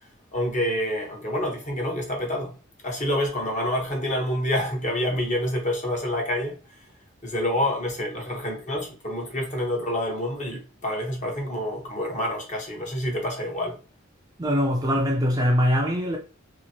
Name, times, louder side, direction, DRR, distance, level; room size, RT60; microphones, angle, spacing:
voice 1, 0.3-2.5 2.8-6.5 7.2-13.8, left 1 dB, 35° left, 1.0 m, -27 dB
voice 2, 14.4-16.2, equal, 20° right, 0.5 m, -22 dB
2.9 x 2.7 x 2.8 m
head